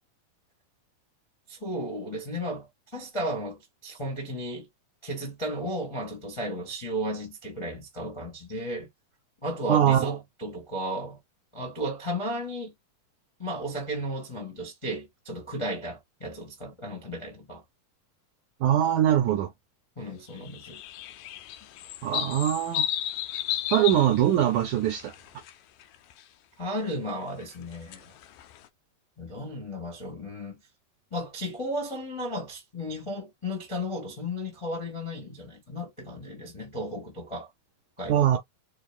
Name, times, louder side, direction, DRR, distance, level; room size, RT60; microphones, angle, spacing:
voice 1, 1.5-2.7 2.9-4.7 5.0-8.9 9.4-11.2 11.5-12.7 13.4-17.6 20.0-20.8 26.6-28.1 29.2-30.6 31.1-37.5 38.0-38.4, equal, 25° left, 0.7 m, -34 dB
voice 2, 9.7-10.2 18.6-19.5 22.0-22.9 23.7-25.1 38.1-38.4, right 11 dB, 75° right, 1.8 m, -22 dB
sound 1, 20.4-25.5 25.8-26.2 27.4-28.7, left 12 dB, 80° left, 2.0 m, -33 dB
6.4 x 2.3 x 2.4 m
omnidirectional pair, 4.3 m